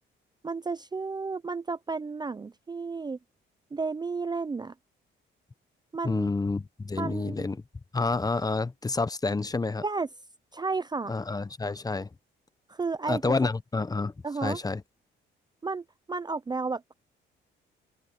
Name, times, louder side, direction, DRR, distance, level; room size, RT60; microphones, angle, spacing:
voice 1, 0.4-3.2 3.7-4.7 5.9-6.3 7.0-7.4 9.8-10.1 10.5-11.1 12.7-13.3 14.2-14.6 15.6-16.9, right 4 dB, 20° right, 0.5 m, -32 dB
voice 2, 6.0-7.6 7.9-9.8 11.1-12.1 13.1-14.1 14.4-14.8, left 3 dB, 20° left, 0.8 m, -29 dB
open air
cardioid pair, 90°, 20 cm